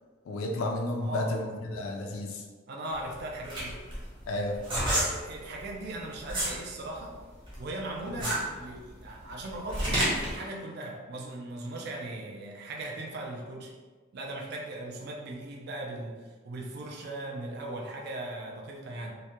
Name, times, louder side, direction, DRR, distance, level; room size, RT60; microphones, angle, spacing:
voice 1, 0.3-2.4 4.3-4.6 8.1-8.2, left 1 dB, 80° left, 2 dB, 0.3 m, -32 dB
voice 2, 1.0-1.3 2.7-3.8 4.9-7.2 7.6-13.7 14.1-16.2 16.4-19.2, right 2 dB, 50° right, 0 dB, 0.3 m, -38 dB
sound 1, 2.9-6.6 7.0-10.4, right 1 dB, 25° right, 0.8 m, -30 dB
2.3 x 2.1 x 2.8 m, 1.4 s
head